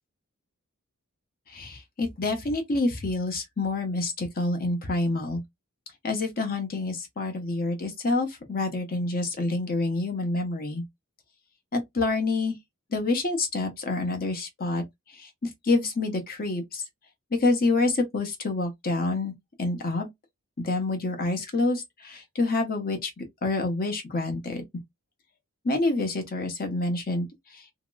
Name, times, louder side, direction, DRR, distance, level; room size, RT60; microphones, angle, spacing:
voice 1, 1.5-5.4 6.0-10.8 11.7-12.5 12.9-14.8 15.1-16.8 17.3-19.3 19.6-20.1 20.6-24.6 25.6-27.3 27.5-27.6, left 2 dB, 45° left, 0.9 m, -27 dB
2.9 x 2.9 x 2.2 m
head